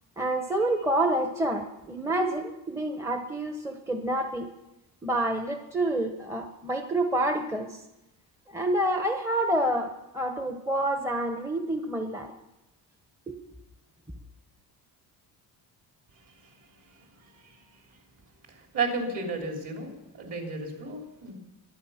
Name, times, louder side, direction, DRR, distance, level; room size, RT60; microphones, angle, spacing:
voice 1, 0.2-4.5 5.0-7.8 8.5-12.3 13.3-13.4, right 1 dB, 5° right, 5 dB, 0.9 m, -28 dB
voice 2, 16.9-17.6 17.9-18.0 18.5-21.3, right 3 dB, 50° right, 2 dB, 3.7 m, -34 dB
22.5 x 9.3 x 5.7 m, 0.95 s
cardioid pair, 150°, 39 cm